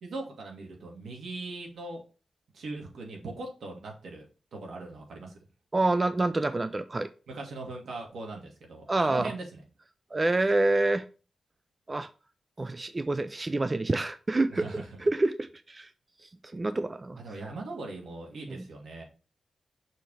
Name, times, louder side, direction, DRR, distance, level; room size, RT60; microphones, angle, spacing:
voice 1, 0.0-2.0 2.5-4.3 4.5-5.3 7.3-9.6 14.5-15.0 17.2-19.0, right 3 dB, 85° right, 1 dB, 2.0 m, -40 dB
voice 2, 5.7-7.1 8.9-9.3 10.1-11.1 11.9-12.1 12.6-15.9 16.5-17.2 18.5-18.6, right 2 dB, 25° right, 11 dB, 0.4 m, -27 dB
6.4 x 3.4 x 5.5 m, 0.35 s
wide cardioid pair, 130°, 0 cm